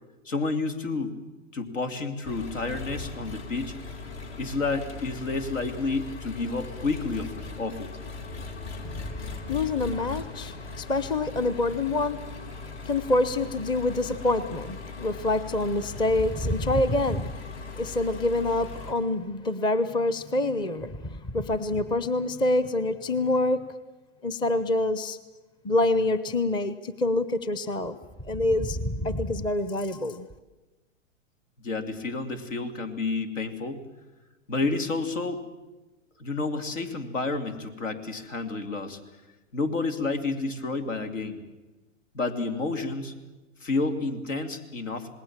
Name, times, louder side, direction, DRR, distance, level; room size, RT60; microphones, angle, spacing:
voice 1, 0.2-1.2 1.5-3.7 4.4-7.9 31.6-33.8 34.5-35.4 36.2-39.0 39.5-41.4 42.1-43.1 43.6-45.1, left 3 dB, 75° left, 8 dB, 3.0 m, -30 dB
Engine, 2.2-18.9, left 4 dB, 60° left, 3.6 m, -39 dB
voice 2, 8.8-9.2 9.5-12.4 12.8-17.3 17.8-23.7 24.2-25.2 25.6-28.0 28.2-30.3, left 2 dB, 10° left, 14 dB, 0.7 m, -26 dB
27.0 x 20.0 x 7.4 m, 1.1 s
hypercardioid pair, 125°, 38 cm